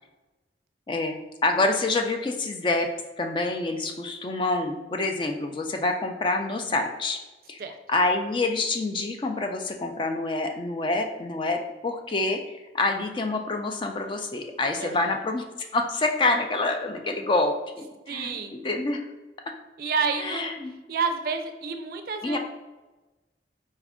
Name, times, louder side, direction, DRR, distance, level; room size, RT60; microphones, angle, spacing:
voice 1, 1.4-2.9 3.2-7.2 7.5-7.6 7.9-15.4 15.7-19.1 20.2-20.8 22.2-22.4, left 2 dB, 30° left, 4 dB, 0.3 m, -27 dB
voice 2, 14.8-15.2 18.1-18.5 19.8-20.5 20.9-22.4, right 5 dB, 55° right, 6 dB, 0.4 m, -29 dB
4.2 x 2.4 x 3.5 m, 1.1 s
head